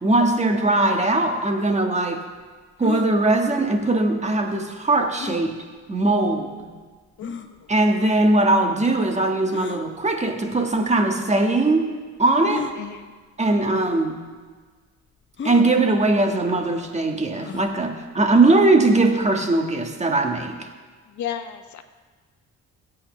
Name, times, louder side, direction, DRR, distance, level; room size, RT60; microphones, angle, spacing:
voice 1, 0.0-2.2 2.8-5.6 5.9-6.7 7.7-12.7 13.4-14.2 15.4-20.6, right 2 dB, 20° right, 3 dB, 1.5 m, -20 dB
sound 1, 2.8-3.1 5.2-5.5 6.3-6.4 7.2-7.5 9.5-9.8 10.9-11.0 12.4-12.8 13.7-13.8 14.1-14.2 15.4-15.7 17.4-17.7, left 6 dB, 40° left, 0.9 m, -33 dB
voice 2, 12.8-13.1 13.6-13.7 21.1-21.8, left 9 dB, 70° left, 8 dB, 0.9 m, -33 dB
20.5 x 8.6 x 3.3 m, 1.4 s
cardioid pair, 90°, 30 cm